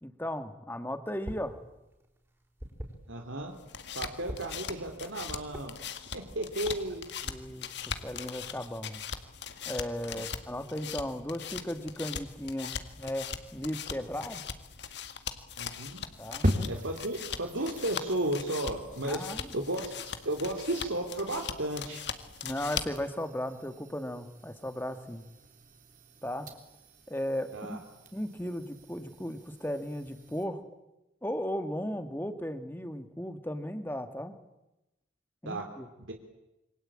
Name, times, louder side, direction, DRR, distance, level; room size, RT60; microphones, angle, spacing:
voice 1, 0.0-1.6 7.2-9.0 9.7-14.4 16.2-16.5 19.0-19.6 22.4-25.2 26.2-26.5 27.1-27.8 28.1-30.6 31.2-34.4 35.4-35.9, equal, 10° left, 9 dB, 1.9 m, -36 dB
sound 1, 1.1-1.6 1.8-3.4 3.9-5.0 5.3-5.7 6.2-7.0, equal, 15° right, 4.9 m, -42 dB
voice 2, 3.1-3.5 3.9-5.8 6.1-7.1 10.1-10.2 15.6-16.0 16.7-19.3 19.5-22.0 27.5-27.8 35.4-35.6 36.1-36.2, right 1 dB, 85° right, 3 dB, 3.2 m, -34 dB
sound 2, 3.5-23.1, left 7 dB, 60° left, 2.0 m, -40 dB
sound 3, 16.4-30.4, equal, 40° right, 3.8 m, -40 dB
27.5 x 25.0 x 8.8 m, 0.95 s
head